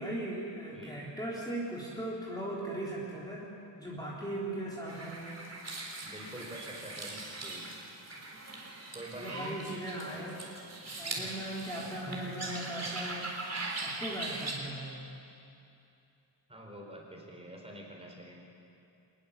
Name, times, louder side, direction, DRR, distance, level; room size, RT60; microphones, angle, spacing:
voice 1, 0.0-5.4 9.1-10.4 11.0-13.3 13.7-15.0, right 1 dB, 10° left, -6 dB, 3.6 m, -38 dB
voice 2, 0.7-1.1 6.0-7.6 8.9-9.6 10.1-10.3 11.0-11.3 12.0-12.5 16.5-18.4, right 1 dB, 15° right, -1 dB, 4.5 m, -46 dB
sound 1, 4.9-14.5, right 2 dB, 35° right, 3.9 m, -41 dB
24.5 x 20.5 x 7.3 m, 2.7 s
wide cardioid pair, 140°, 46 cm